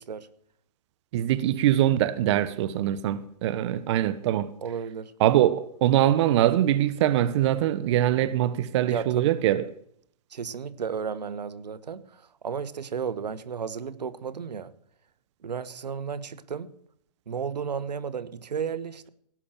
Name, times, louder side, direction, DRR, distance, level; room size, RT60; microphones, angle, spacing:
voice 1, 1.1-4.5 5.2-9.6, right 12 dB, 45° right, 1.1 m, -23 dB
voice 2, 4.6-5.1 8.8-9.4 10.3-14.7 15.4-16.7 17.3-19.1, right 6 dB, 85° right, 1.3 m, -33 dB
17.5 x 6.4 x 8.9 m
hypercardioid pair, 140°, 21 cm